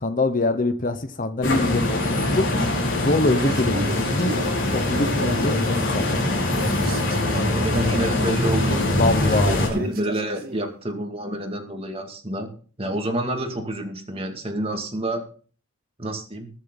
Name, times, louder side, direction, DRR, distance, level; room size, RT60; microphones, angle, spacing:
voice 1, 0.0-4.3 4.7-6.5 9.0-9.9, left 2 dB, 40° left, 10 dB, 0.9 m, -24 dB
sound 1, 1.4-9.7, left 1 dB, 55° left, 5.2 m, -23 dB
Male speech man speaking, 3.3-6.3 6.5-10.7, right 2 dB, 45° right, 1.7 m, -36 dB
voice 2, 7.3-12.5 12.8-15.2 16.0-16.5, right 1 dB, 25° right, 4 dB, 2.2 m, -29 dB
21.0 x 7.3 x 3.9 m, 0.41 s
head